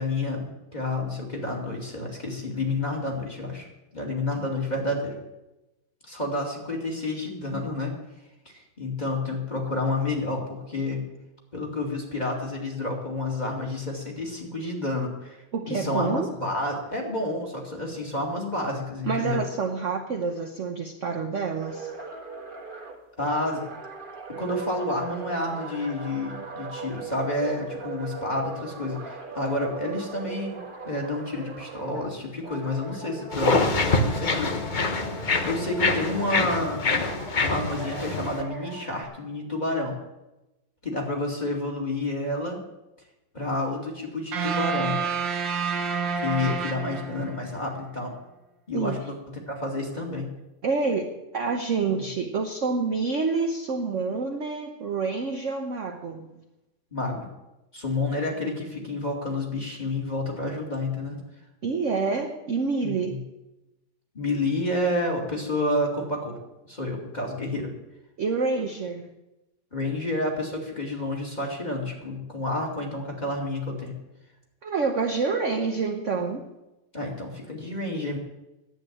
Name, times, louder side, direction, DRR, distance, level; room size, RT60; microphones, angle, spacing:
voice 1, 0.0-3.7 3.9-5.1 6.1-7.9 8.5-11.1 11.5-15.4 15.7-19.4 23.2-23.6 24.4-34.6 35.4-36.8 37.4-39.9 40.8-42.6 43.3-45.0 46.1-48.1 48.7-50.3 51.9-52.0 56.9-57.3 57.7-61.2 62.8-63.2 64.1-66.4 66.7-67.7 69.7-73.9 76.9-78.2, left 2 dB, 20° left, -1 dB, 2.4 m, -29 dB
voice 2, 15.5-16.3 19.0-21.9 48.7-49.0 50.6-56.3 61.6-63.2 68.2-69.1 74.6-76.5, right 4 dB, 50° right, 4 dB, 1.0 m, -27 dB
sound 1, 21.6-32.2 32.4-36.4 36.9-39.0, right 3 dB, 25° right, 1.5 m, -39 dB
sound 2, 33.3-38.4, left 3 dB, 40° left, 0.7 m, -25 dB
sound 3, 44.3-47.6, right 5 dB, 70° right, 1.8 m, -28 dB
10.5 x 8.6 x 8.6 m, 0.99 s
omnidirectional pair, 2.2 m